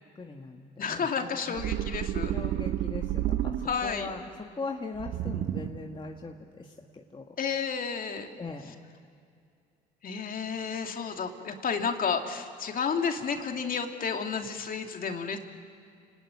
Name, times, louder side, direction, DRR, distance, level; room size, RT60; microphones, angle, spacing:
voice 1, 0.2-1.6 2.3-3.5 3.8-6.7 6.9-7.3 8.4-8.7, left 3 dB, 25° left, 2 dB, 1.9 m, -40 dB
voice 2, 0.8-2.3 3.6-4.1 7.4-8.3 10.0-15.4, left 6 dB, 45° left, 4 dB, 2.9 m, -31 dB
sound 1, 1.6-4.0 5.0-6.0, right 12 dB, 55° right, 1.1 m, -31 dB
29.5 x 19.0 x 9.8 m, 2.3 s
hypercardioid pair, 65°, 20 cm